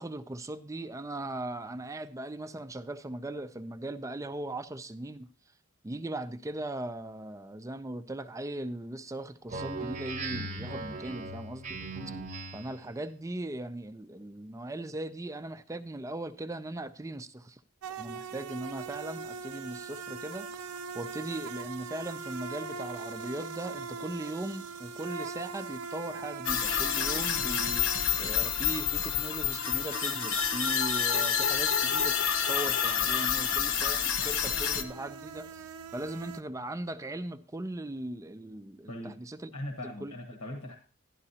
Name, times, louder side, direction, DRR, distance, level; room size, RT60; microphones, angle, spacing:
voice 1, 0.0-5.3 5.8-11.8 12.1-12.2 12.5-17.6 18.0-39.5 40.0-40.1, right 1 dB, 15° right, 0.4 m, -39 dB
Speech synthesizer, 9.5-12.8, right 2 dB, 35° right, 0.8 m, -38 dB
sound 1, 17.8-36.4, right 4 dB, 85° right, 0.5 m, -42 dB
sound 2, 26.4-34.8, left 8 dB, 65° left, 0.9 m, -28 dB
voice 2, 39.5-40.8, left 1 dB, 85° left, 1.3 m, -39 dB
11.5 x 11.0 x 2.8 m
head